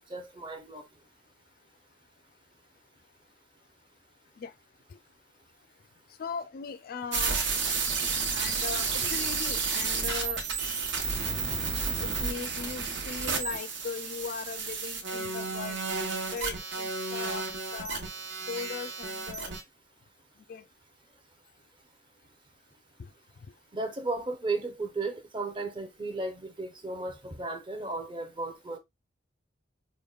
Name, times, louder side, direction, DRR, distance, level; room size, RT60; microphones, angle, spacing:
voice 1, 0.1-0.9 23.7-28.8, right 3 dB, 25° right, 0.6 m, -34 dB
voice 2, 6.2-7.3 8.3-10.4 12.0-15.8 16.3-17.5 17.7-18.0 18.5-19.5 20.5-20.6 23.0-23.1, left 6 dB, 50° left, 0.3 m, -38 dB
sound 1, 7.1-19.6, right 5 dB, 75° right, 1.0 m, -31 dB
5.1 x 2.1 x 2.3 m
head